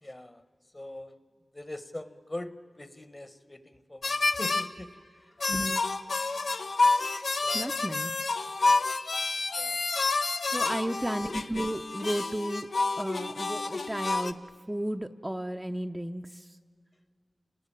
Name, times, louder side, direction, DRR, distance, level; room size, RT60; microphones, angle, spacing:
voice 1, 0.0-0.5 0.7-1.2 1.5-5.3 7.4-8.0 9.5-9.9 10.5-11.2, left 1 dB, 25° left, 13 dB, 1.2 m, -43 dB
sound 1, 4.0-4.7 5.4-14.3, left 3 dB, 80° left, 0.9 m, -29 dB
voice 2, 5.5-5.8 7.5-8.1 10.5-12.7 13.0-14.4 14.7-16.4, right 1 dB, 10° right, 5 dB, 0.6 m, -33 dB
29.0 x 19.5 x 8.8 m, 2.1 s
wide cardioid pair, 90°, 0 cm